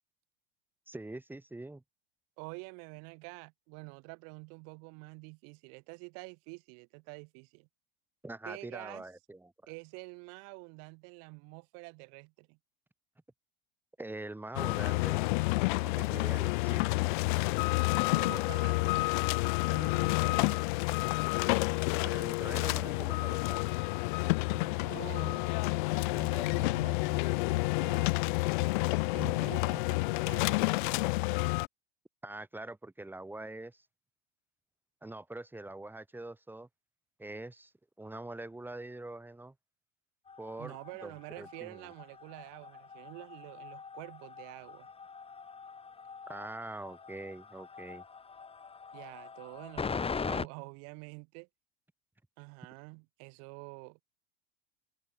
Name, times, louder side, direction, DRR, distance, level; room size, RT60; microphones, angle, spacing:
voice 1, 0.9-1.8 8.2-9.5 14.0-15.2 15.8-17.0 22.0-23.7 32.2-33.8 35.0-36.7 37.2-37.7 38.0-39.5 40.4-40.8 41.0-41.9 46.3-48.0, right 2 dB, 5° right, 3.2 m, -44 dB
voice 2, 2.4-7.7 8.4-9.0 9.7-12.6 17.9-19.2 19.7-20.7 24.5-28.2 29.1-31.2 40.6-44.9 48.9-51.5 52.4-54.0, right 36 dB, 55° right, 7.7 m, -48 dB
sound 1, 14.6-31.7, left 24 dB, 55° left, 0.5 m, -29 dB
sound 2, 40.3-50.5, left 5 dB, 20° left, 4.1 m, -42 dB
hypercardioid pair, 90°, 31 cm